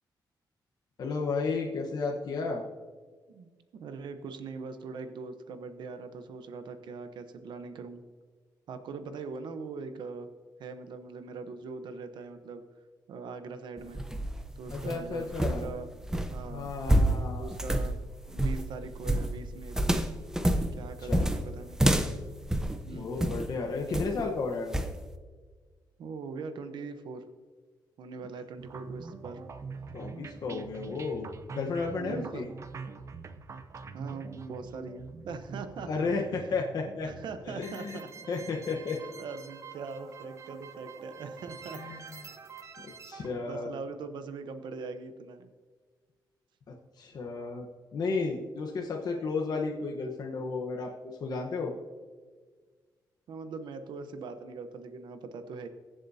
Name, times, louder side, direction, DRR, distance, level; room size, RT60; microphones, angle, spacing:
voice 1, 1.0-2.6 14.7-15.7 16.5-17.5 21.0-21.3 22.9-24.8 29.9-31.3 31.5-32.5 35.9-37.1 37.5-38.0 38.3-39.0 41.7-42.0 42.8-43.7 46.7-47.7 47.9-50.9 51.2-51.7, left 4 dB, 60° left, 0 dB, 1.1 m, -33 dB
voice 2, 3.3-8.0 8.7-10.3 10.6-12.6 13.1-14.0 14.6-15.9 16.3-16.7 17.4-20.0 20.7-21.8 22.9-23.3 26.0-27.2 28.0-29.4 31.9-32.5 33.9-36.2 37.0-38.3 39.0-42.0 43.3-45.5 53.3-55.7, right 4 dB, 75° right, 9 dB, 0.9 m, -41 dB
sound 1, 13.8-23.5 23.9-24.3 24.7-25.0, right 1 dB, 5° right, 0.7 m, -28 dB
sound 2, 28.6-43.3, right 5 dB, 40° right, 0.7 m, -45 dB
22.5 x 7.4 x 2.7 m, 1.5 s
cardioid pair, 130°, 8 cm